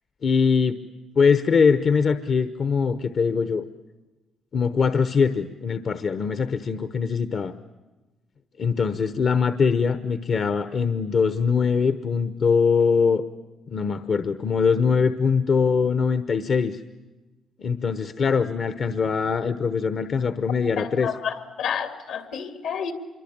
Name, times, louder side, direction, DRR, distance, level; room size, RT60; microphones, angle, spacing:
voice 1, 0.2-0.8 1.2-3.6 4.5-7.5 8.6-13.2 13.7-16.8 17.6-21.1, left 5 dB, 55° left, 1.1 m, -22 dB
voice 2, 20.8-22.9, left 7 dB, 80° left, 3.0 m, -30 dB
26.0 x 23.0 x 8.8 m
cardioid pair, 90°, 0 cm